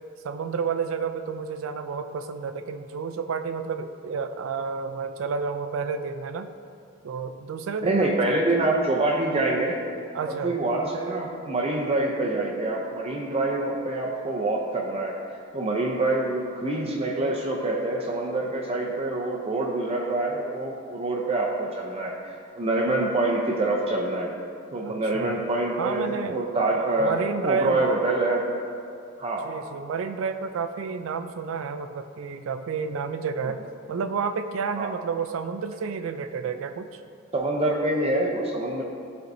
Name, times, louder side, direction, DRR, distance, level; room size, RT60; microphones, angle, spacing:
voice 1, 0.2-6.5 7.0-8.3 10.1-10.6 24.8-25.4 25.8-26.4 27.0-27.8 29.4-33.6 33.9-37.0, right 5 dB, 85° right, 8 dB, 0.4 m, -30 dB
voice 2, 7.8-9.8 10.3-15.2 15.5-24.3 24.7-27.1 27.4-28.4 29.2-29.5 34.8-34.9 37.3-38.8, right 2 dB, 30° right, -1 dB, 0.6 m, -26 dB
12.5 x 4.4 x 2.6 m, 2.4 s
head